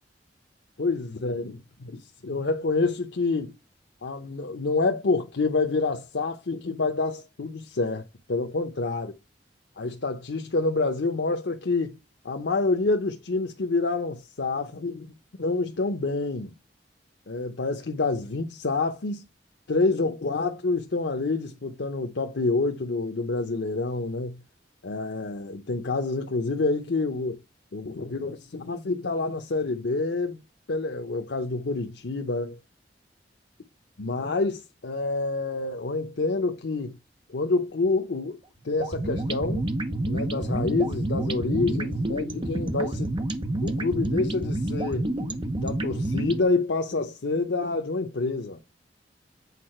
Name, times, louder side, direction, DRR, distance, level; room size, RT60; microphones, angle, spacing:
voice 1, 0.8-3.5 4.0-9.1 9.8-12.0 12.2-15.1 15.4-16.5 17.3-19.2 19.7-24.4 24.8-27.4 27.7-30.4 30.7-32.6 34.0-37.0 37.3-38.4 38.6-39.7 40.1-43.2 43.6-45.1 45.6-48.6, left 3 dB, 90° left, 0.8 m, -27 dB
sound 1, 38.8-46.4, right 1 dB, 30° right, 0.9 m, -29 dB
8.3 x 4.7 x 4.4 m
head